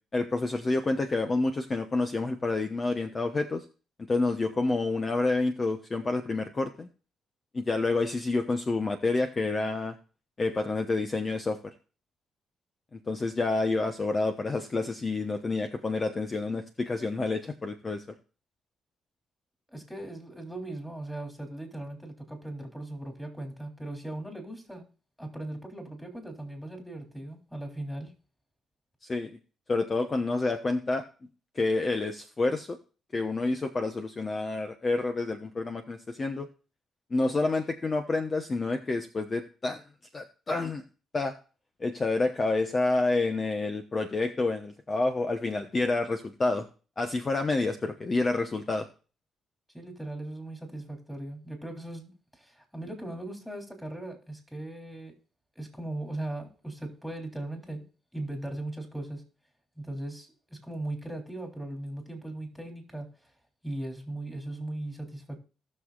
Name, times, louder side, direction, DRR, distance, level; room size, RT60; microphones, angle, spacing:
voice 1, 0.1-3.6 4.0-6.9 7.5-10.0 10.4-11.6 12.9-18.0 29.0-29.3 29.7-31.0 31.5-32.8 33.1-36.5 37.1-39.8 40.1-40.8 41.1-41.3 41.8-46.7 47.0-48.9, left 3 dB, 30° left, 6 dB, 1.0 m, -28 dB
voice 2, 19.7-24.9 25.2-28.1 49.7-55.1 55.5-57.9 58.1-59.2 59.8-63.3 63.6-65.4, right 1 dB, 5° left, 2 dB, 3.4 m, -38 dB
18.5 x 6.5 x 2.5 m, 0.36 s
cardioid pair, 90°, 0 cm